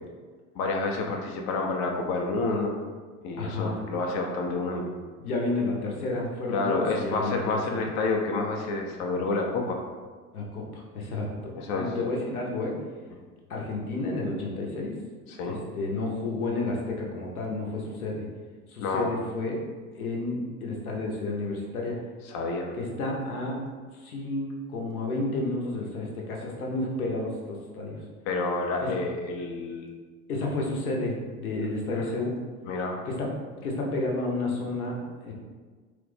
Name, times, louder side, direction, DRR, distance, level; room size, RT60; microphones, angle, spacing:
voice 1, 0.6-2.7 3.2-4.8 6.5-9.8 11.5-11.9 15.3-15.6 18.8-19.1 22.3-22.7 28.3-30.0 32.7-33.0, left 3 dB, 40° left, 1 dB, 0.4 m, -29 dB
voice 2, 3.4-3.8 5.2-7.8 10.3-12.7 13.5-14.9 15.4-18.2 18.7-19.6 20.0-22.0 22.7-23.6 23.9-28.0 28.8-29.0 30.3-32.4 33.0-33.4 33.6-35.3, left 2 dB, 80° left, -1 dB, 0.7 m, -31 dB
3.0 x 2.0 x 3.2 m, 1.5 s
figure-of-eight pair, 70°, 43 cm